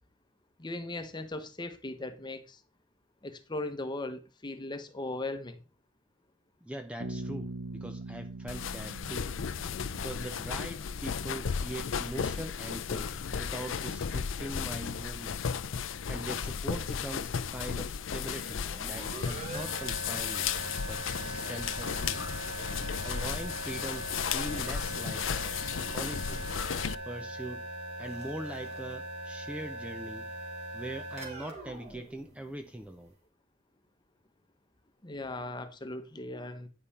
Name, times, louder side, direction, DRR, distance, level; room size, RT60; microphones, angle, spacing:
voice 1, 0.6-2.6 3.2-5.6 35.0-36.7, left 2 dB, 25° left, 1.0 m, -38 dB
voice 2, 6.6-9.3 9.9-15.4 16.1-20.5 20.9-22.3 23.0-25.5 25.8-26.5 27.0-27.7 28.0-30.3 30.7-33.1, right 1 dB, 5° right, 0.5 m, -42 dB
Bass guitar, 7.0-10.7, right 2 dB, 80° right, 1.2 m, -42 dB
sound 1, 8.5-27.0, left 7 dB, 75° left, 0.5 m, -34 dB
sound 2, 18.3-32.9, right 2 dB, 35° right, 2.7 m, -41 dB
9.8 x 5.4 x 4.2 m
head